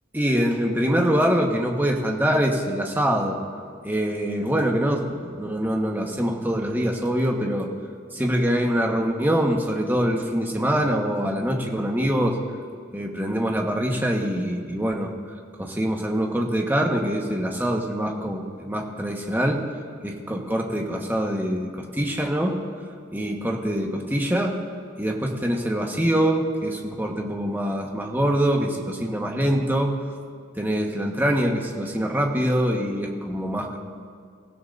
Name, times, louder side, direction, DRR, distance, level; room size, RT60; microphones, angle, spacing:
voice 1, 0.1-3.4 3.8-7.7 8.1-12.4 12.9-15.1 15.6-19.6 20.0-22.6 23.1-24.6 25.0-29.9 30.5-33.8, equal, 10° right, 1 dB, 1.4 m, -24 dB
29.5 x 15.5 x 2.7 m, 2.2 s
head